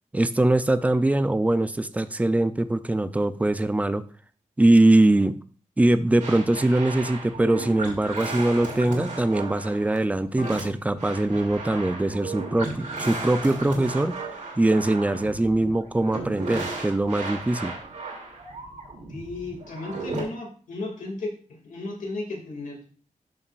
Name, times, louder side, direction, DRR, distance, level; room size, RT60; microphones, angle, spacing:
voice 1, 0.1-4.0 4.6-5.3 5.8-14.2 14.6-17.7, right 1 dB, 10° right, 12 dB, 0.4 m, -22 dB
sound 1, 6.2-20.2, right 3 dB, 65° right, 2.3 m, -35 dB
voice 2, 19.1-22.9, left 2 dB, 85° left, 1 dB, 2.3 m, -34 dB
12.5 x 5.5 x 2.4 m, 0.41 s
wide cardioid pair, 170°, 13 cm